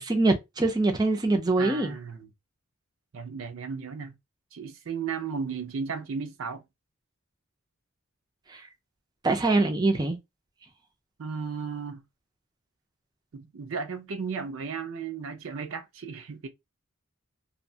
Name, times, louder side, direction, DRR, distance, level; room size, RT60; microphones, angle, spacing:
voice 1, 0.0-1.9 8.5-8.6 9.2-10.2, right 2 dB, 20° right, 0.4 m, -24 dB
voice 2, 1.6-2.3 3.1-4.2 4.5-6.6 11.2-12.0 13.3-16.5, right 5 dB, 70° right, 0.5 m, -35 dB
2.8 x 2.1 x 2.6 m
head